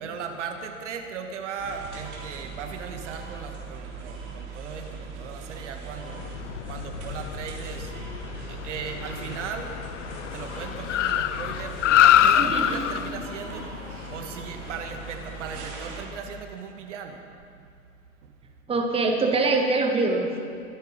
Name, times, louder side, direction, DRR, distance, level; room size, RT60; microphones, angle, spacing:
voice 1, 0.0-7.9 8.5-9.8 10.3-17.2 17.6-17.7 18.2-18.3, right 6 dB, 60° right, 5 dB, 1.7 m, -37 dB
sound 1, 1.6-16.1, right 4 dB, 40° right, 3.6 m, -40 dB
Car, 6.1-15.6, left 11 dB, 60° left, 0.7 m, -26 dB
voice 2, 12.4-12.8 18.7-20.3, right 3 dB, 15° right, 3 dB, 1.7 m, -23 dB
23.5 x 9.1 x 5.5 m, 2.4 s
figure-of-eight pair, 100°, 41 cm